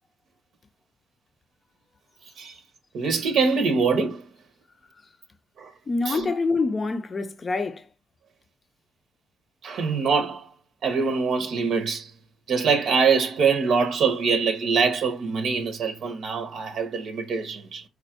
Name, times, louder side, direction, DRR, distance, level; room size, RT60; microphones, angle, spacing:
voice 1, 2.9-4.3 5.6-5.7 6.1-6.3 9.6-10.5 10.8-12.1 12.5-17.8, right 5 dB, 70° right, 0.7 m, -24 dB
voice 2, 5.9-7.9, left 3 dB, 35° left, 0.5 m, -26 dB
4.2 x 2.3 x 2.8 m
cardioid pair, 90°, 0 cm